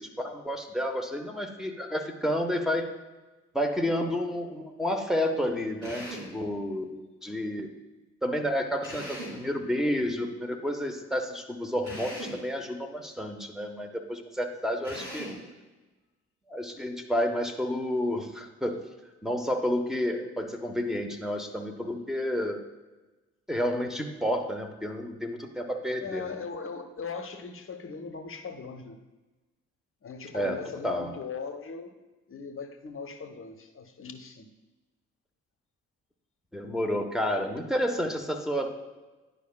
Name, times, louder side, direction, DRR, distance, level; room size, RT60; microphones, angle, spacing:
voice 1, 0.0-2.9 3.5-7.7 8.2-15.3 16.5-18.8 19.2-22.6 23.5-26.4 30.3-31.2 36.5-38.7, equal, ahead, 2 dB, 1.0 m, -30 dB
Drill, 5.8-6.4 8.8-9.5 11.8-12.4 14.8-15.4, equal, 90° right, 2.2 m, -39 dB
voice 2, 26.0-29.0 30.0-31.9 32.3-34.5, left 5 dB, 35° left, 6 dB, 0.9 m, -39 dB
10.5 x 4.9 x 2.2 m, 1.2 s
hypercardioid pair, 45°, 35 cm